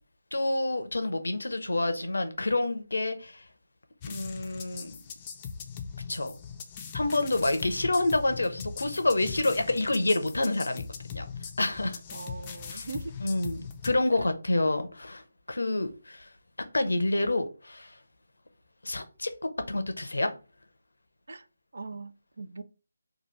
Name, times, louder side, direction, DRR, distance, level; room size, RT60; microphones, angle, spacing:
voice 1, 0.3-3.4 4.0-5.0 6.1-6.3 6.9-10.8 11.1-11.2 11.6-12.0 12.7-12.9 13.2-15.2 15.5-16.3 16.7-17.9 18.8-19.3 19.7-20.3, left 2 dB, 80° left, 0.5 m, -28 dB
sound 1, 4.0-13.9, left 6 dB, 25° left, 0.4 m, -40 dB
voice 2, 12.1-13.1 14.1-14.3 21.3-21.5 21.7-22.6, right 3 dB, 65° right, 0.3 m, -40 dB
2.8 x 2.2 x 3.2 m
figure-of-eight pair, 160°, 0 cm